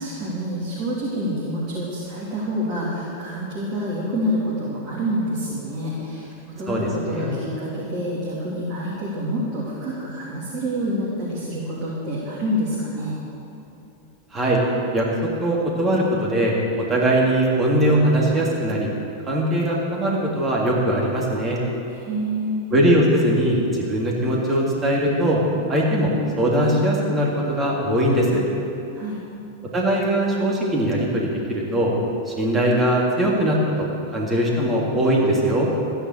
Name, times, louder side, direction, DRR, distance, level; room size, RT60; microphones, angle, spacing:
voice 1, 0.0-13.2 21.9-22.5 28.9-29.2, equal, 40° right, -7 dB, 3.2 m, -27 dB
voice 2, 14.9-18.9 19.3-21.6 22.7-25.4 25.7-28.4 29.7-31.9 32.3-35.7, right 1 dB, 20° right, -3 dB, 3.3 m, -21 dB
14.0 x 10.5 x 6.8 m, 2.8 s
figure-of-eight pair, 90°, 0 cm